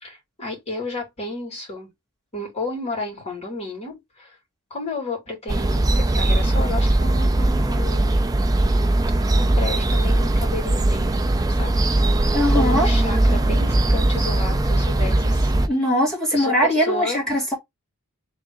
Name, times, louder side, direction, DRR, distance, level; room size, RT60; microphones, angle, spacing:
voice 1, 0.0-1.9 2.3-4.4 4.7-8.1 9.4-11.1 11.5-11.8 12.5-15.5 16.3-17.5, left 2 dB, 30° left, 2.5 m, -32 dB
sound 1, 5.5-15.7, right 1 dB, 15° right, 0.5 m, -19 dB
voice 2, 12.3-12.9 15.7-17.5, equal, ahead, 1.9 m, -21 dB
3.7 x 2.7 x 3.6 m
head